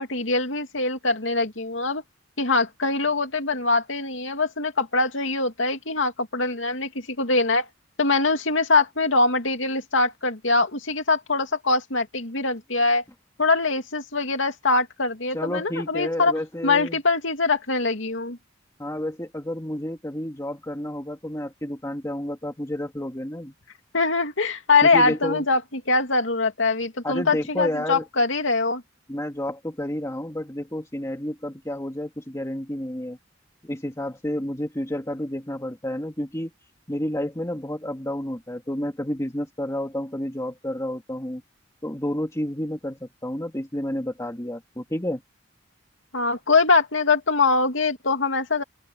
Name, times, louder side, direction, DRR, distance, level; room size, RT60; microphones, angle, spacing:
voice 1, 0.0-2.0 2.4-6.9 7.2-7.7 8.0-13.0 13.4-16.3 16.6-18.4 23.9-28.8 46.1-48.6, left 3 dB, 80° left, 2.5 m, -23 dB
voice 2, 15.3-17.0 18.8-23.5 24.8-25.4 27.0-28.0 29.1-33.2 33.6-36.5 36.9-41.4 41.8-45.2, left 1 dB, 15° left, 2.2 m, -30 dB
open air
head